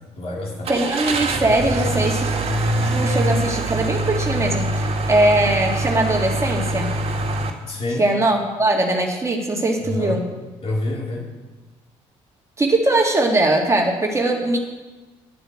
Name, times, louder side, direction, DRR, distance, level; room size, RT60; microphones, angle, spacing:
voice 1, 0.2-0.7 7.7-8.1 9.8-10.2 10.6-11.3, left 2 dB, 50° left, -2 dB, 3.4 m, -27 dB
Car / Engine starting, 0.6-7.5, right 2 dB, 45° right, 1.9 m, -23 dB
voice 2, 0.7-2.3 2.9-6.9 8.0-10.3 12.6-14.6, right 2 dB, 20° right, 0 dB, 2.4 m, -20 dB
9.8 x 8.0 x 7.7 m, 1.2 s
supercardioid pair, 65°, 14 cm